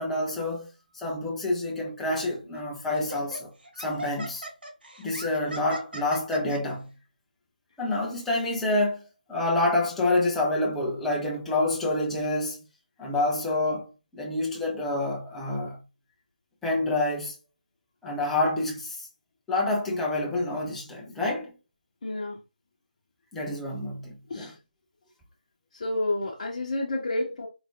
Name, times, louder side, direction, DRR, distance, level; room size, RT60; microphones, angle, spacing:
voice 1, 0.0-3.5 3.8-4.4 5.0-6.9 7.8-12.6 13.0-15.8 16.6-17.3 18.0-19.1 19.5-21.5 23.3-24.5, left 2 dB, 5° left, 0.4 m, -28 dB
Laughter, 2.1-2.3 2.9-6.6, right 1 dB, 85° right, 1.6 m, -39 dB
voice 2, 22.0-22.4 24.3-24.6 25.7-27.5, left 2 dB, 35° left, 0.8 m, -30 dB
4.6 x 2.5 x 2.9 m
figure-of-eight pair, 170°, 5 cm